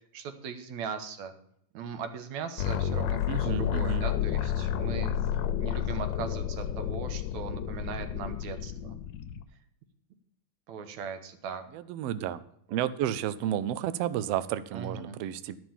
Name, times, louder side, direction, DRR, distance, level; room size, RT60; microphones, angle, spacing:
voice 1, 0.1-1.3 1.7-5.2 5.6-9.0 10.7-11.6 12.7-12.8 14.7-15.2, right 6 dB, 70° right, 9 dB, 2.4 m, -39 dB
sound 1, 2.6-9.4, left 10 dB, 75° left, 1.9 m, -30 dB
voice 2, 3.3-4.1 11.7-12.4 12.7-15.6, right 11 dB, 90° right, 14 dB, 1.4 m, -31 dB
12.0 x 6.1 x 7.3 m, 0.71 s
omnidirectional pair, 3.5 m